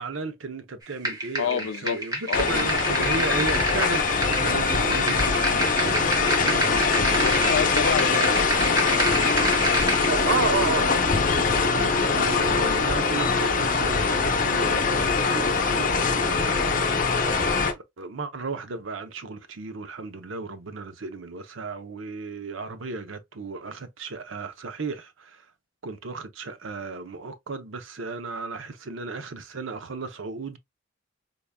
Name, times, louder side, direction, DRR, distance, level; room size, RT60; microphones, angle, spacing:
voice 1, 0.0-7.2 8.0-8.5 10.1-16.8 17.7-25.5 25.8-30.6, right 4 dB, 85° right, 0.7 m, -34 dB
sound 1, 1.0-10.1, right 1 dB, 20° right, 1.2 m, -29 dB
voice 2, 1.4-2.0 2.3-2.7 7.1-9.4, left 7 dB, 85° left, 0.4 m, -30 dB
sound 2, 2.3-17.7, left 4 dB, 45° left, 0.7 m, -23 dB
3.9 x 3.4 x 2.2 m
head